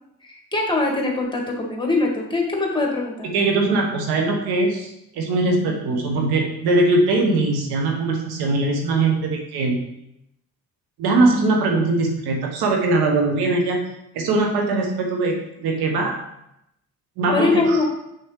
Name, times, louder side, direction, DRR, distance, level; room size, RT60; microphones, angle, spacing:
voice 1, 0.2-3.3 17.3-17.8, left 3 dB, 10° left, 0 dB, 1.9 m, -22 dB
voice 2, 3.2-9.8 11.0-13.8 14.1-16.2 17.2-17.8, right 2 dB, 60° right, 1 dB, 1.2 m, -21 dB
6.4 x 6.3 x 3.2 m, 0.81 s
hypercardioid pair, 50°, 44 cm